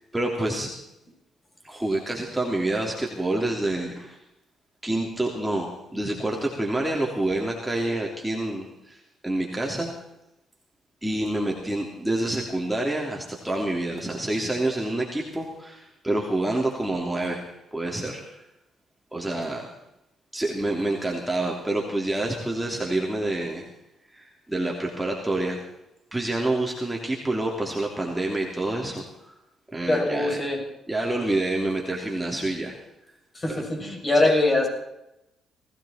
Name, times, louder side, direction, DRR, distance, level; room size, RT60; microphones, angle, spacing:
voice 1, 0.1-0.7 1.6-4.2 4.8-9.9 11.0-17.4 17.7-18.2 19.1-19.7 20.3-23.6 24.1-25.6 26.1-29.3 29.7-30.4 30.9-32.8 33.4-33.6, right 1 dB, 10° right, -1 dB, 3.3 m, -27 dB
voice 2, 29.9-30.6 33.3-34.7, left 2 dB, 30° left, 0 dB, 7.7 m, -22 dB
20.0 x 16.5 x 4.4 m, 0.87 s
cardioid pair, 90°, 0 cm